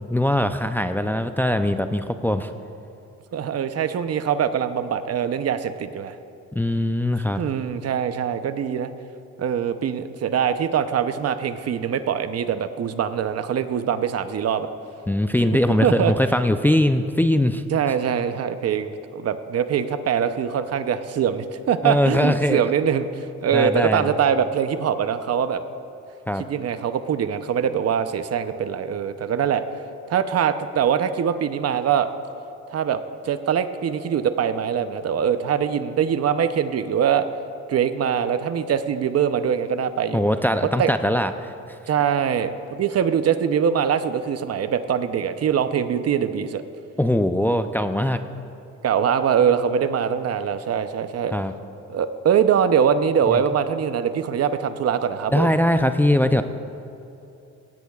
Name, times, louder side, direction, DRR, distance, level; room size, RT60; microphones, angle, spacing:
voice 1, 0.1-2.5 6.5-7.4 15.1-17.6 21.8-22.6 23.5-24.1 26.3-26.5 40.1-41.5 47.0-48.2 51.3-51.5 53.3-53.4 55.3-56.4, left 1 dB, 5° left, 8 dB, 0.5 m, -21 dB
voice 2, 3.3-6.2 7.4-8.9 9.4-14.7 15.8-16.1 17.7-23.1 23.4-25.6 26.4-29.6 30.1-32.1 32.7-37.3 37.7-40.2 40.8-40.9 41.9-46.6 48.8-51.4 51.9-55.6, right 8 dB, 55° right, 10 dB, 0.7 m, -23 dB
17.0 x 16.5 x 2.4 m, 2.8 s
cardioid pair, 90°, 30 cm